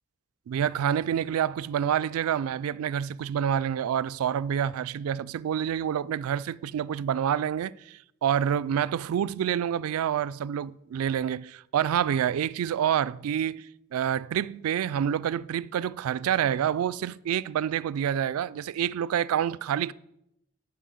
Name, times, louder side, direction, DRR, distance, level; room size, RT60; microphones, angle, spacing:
voice 1, 0.5-13.7 13.9-19.9, right 9 dB, 90° right, 0.3 m, -27 dB
10.5 x 4.5 x 7.6 m
head